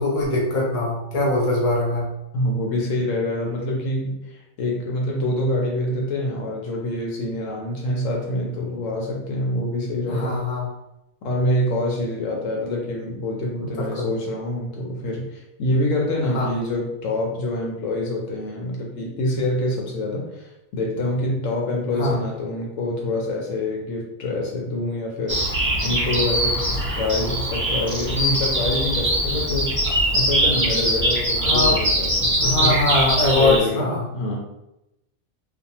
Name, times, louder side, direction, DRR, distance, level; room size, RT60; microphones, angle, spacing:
voice 1, 0.0-2.1 10.1-10.7 13.8-14.1 16.3-16.5 22.0-22.1 31.4-31.8 32.4-34.0, left 2 dB, 35° left, -3 dB, 0.6 m, -22 dB
voice 2, 2.3-10.4 11.2-25.4 25.8-29.8 30.1-32.8 33.2-33.9 34.1-34.4, left 1 dB, 70° left, -1 dB, 0.9 m, -26 dB
Bird vocalization bird call bird song, 25.3-33.6, right 1 dB, 10° right, 0.7 m, -22 dB
2.6 x 2.2 x 2.8 m, 0.88 s
omnidirectional pair, 1.5 m